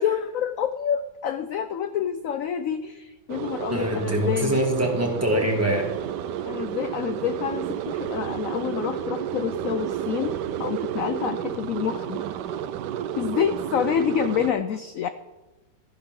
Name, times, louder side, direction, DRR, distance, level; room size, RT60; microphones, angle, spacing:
voice 1, 0.0-4.6 6.4-12.2 13.2-15.1, left 8 dB, 80° left, 10 dB, 0.7 m, -28 dB
sound 1, 3.3-14.5, right 10 dB, 70° right, 1.2 m, -31 dB
voice 2, 3.7-5.9, right 1 dB, 10° right, 0 dB, 2.0 m, -24 dB
14.5 x 10.5 x 3.8 m, 1.1 s
omnidirectional pair, 2.0 m